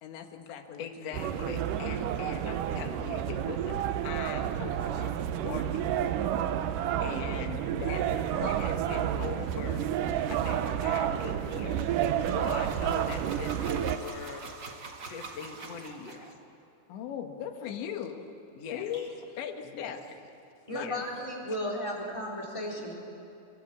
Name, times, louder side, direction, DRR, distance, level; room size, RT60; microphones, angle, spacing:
voice 1, 0.0-1.2 8.6-8.8 13.7-13.8 16.9-18.3 18.7-20.2 20.7-20.9 21.5-21.6, left 8 dB, 85° left, 5 dB, 3.9 m, -39 dB
voice 2, 0.8-6.0 6.4-6.5 7.0-8.1 8.4-9.8 10.3-11.9 12.3-14.5 15.1-16.3 18.6-18.9 19.6-20.0 20.7-21.0, left 6 dB, 50° left, 4 dB, 2.1 m, -41 dB
sound 1, 1.1-14.0, right 10 dB, 90° right, 1.9 m, -30 dB
sound 2, 8.5-16.3, right 4 dB, 60° right, 1.1 m, -46 dB
voice 3, 20.7-22.9, left 1 dB, 5° left, -3 dB, 3.9 m, -34 dB
28.0 x 23.0 x 8.6 m, 2.8 s
omnidirectional pair, 5.0 m